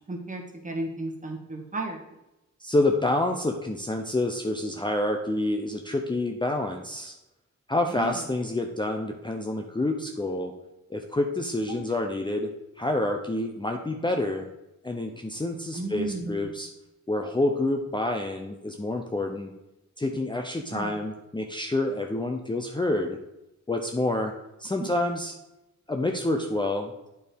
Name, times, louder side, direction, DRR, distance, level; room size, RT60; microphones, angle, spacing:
voice 1, 0.1-2.0 7.9-8.2 15.7-16.5 20.7-21.0 24.8-24.9, right 2 dB, 25° right, 1 dB, 1.7 m, -34 dB
voice 2, 2.6-7.1 7.7-10.5 10.9-12.5 12.8-14.5 14.8-16.7 17.1-19.5 20.0-23.2 23.7-24.3 24.6-25.3 25.9-26.9, left 2 dB, 15° left, 3 dB, 0.7 m, -28 dB
8.7 x 4.7 x 5.1 m, 0.93 s
wide cardioid pair, 105°, 29 cm